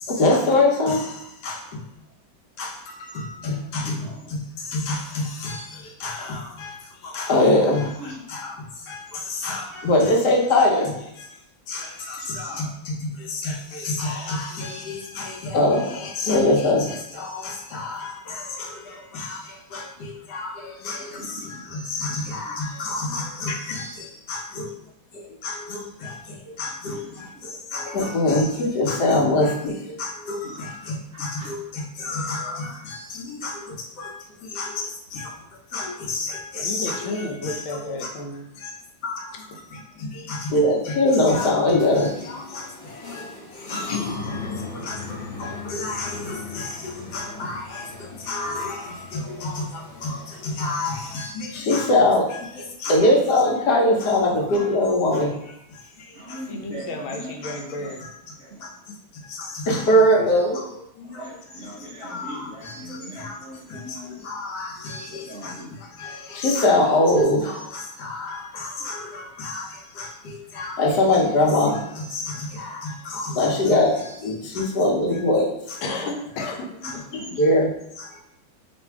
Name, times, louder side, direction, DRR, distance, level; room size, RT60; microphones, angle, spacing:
voice 1, 0.0-1.8 2.6-6.8 7.0-8.5 8.9-11.3 11.7-23.9 24.3-24.7 25.1-34.1 34.4-35.3 35.7-37.6 38.6-38.7 39.0-39.5 39.7-43.3 43.6-43.9 44.3-44.4 44.7-45.0 45.4-55.5 56.0-56.4 57.4-57.6 58.6-58.7 59.3-61.6 62.0-63.4 63.7-75.8 76.8-77.0 77.4-78.2, left 1 dB, 65° left, -1 dB, 1.2 m, -25 dB
voice 2, 3.8-4.2 8.0-8.1 12.2-12.8 20.9-21.7 22.1-22.3 26.9-27.2 28.0-28.1 30.4-30.6 31.1-31.5 43.6-44.1 45.0-45.5 54.5-54.7 56.1-58.0 58.4-58.7 61.1-64.2 65.1-65.7 76.8-77.4, equal, 65° right, -6 dB, 0.6 m, -40 dB
voice 3, 23.5-23.8 36.6-38.5 39.3-39.6 43.9-44.0 56.5-58.0 58.9-59.0 60.2-60.3 75.8-76.7, left 2 dB, 85° left, 3 dB, 1.5 m, -32 dB
sound 1, 41.8-51.2, left 4 dB, 50° left, 0.5 m, -37 dB
3.3 x 2.6 x 4.5 m, 0.81 s
omnidirectional pair, 2.1 m